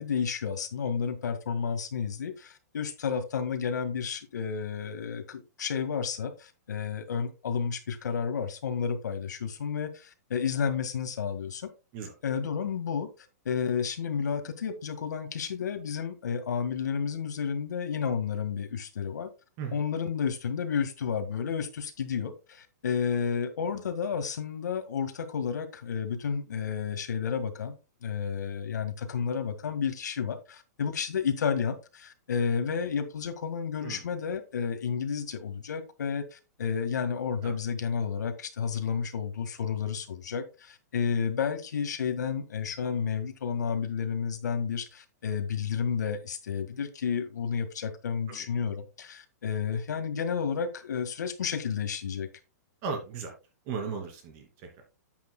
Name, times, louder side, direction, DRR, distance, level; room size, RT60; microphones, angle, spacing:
voice 1, 0.0-11.7 12.2-13.1 13.5-19.3 19.7-52.3, left 6 dB, 85° left, 1.8 m, -31 dB
voice 2, 52.8-53.3 53.6-54.8, right 5 dB, 25° right, 2.7 m, -36 dB
10.5 x 8.4 x 2.3 m
hypercardioid pair, 170°, 9 cm